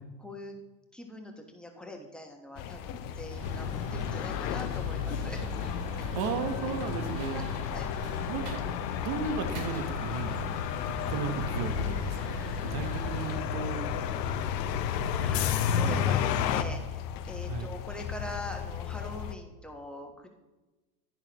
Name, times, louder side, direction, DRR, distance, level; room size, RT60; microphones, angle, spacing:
voice 1, 0.2-0.6 0.9-5.4 7.3-7.4 7.7-7.9 15.2-20.3, left 1 dB, ahead, 1 dB, 1.3 m, -42 dB
sound 1, 2.6-19.4, left 8 dB, 45° left, 0.8 m, -39 dB
sound 2, 3.3-13.3, equal, 75° right, 3.4 m, -41 dB
sound 3, 3.4-16.6, left 8 dB, 80° left, 0.9 m, -32 dB
voice 2, 6.1-7.5 8.3-8.6 9.0-10.4 11.1-12.4 12.7-13.9 15.2-15.8 17.5-17.7, right 5 dB, 50° right, 8 dB, 1.2 m, -35 dB
11.0 x 10.0 x 3.0 m, 1.1 s
supercardioid pair, 115°, 48 cm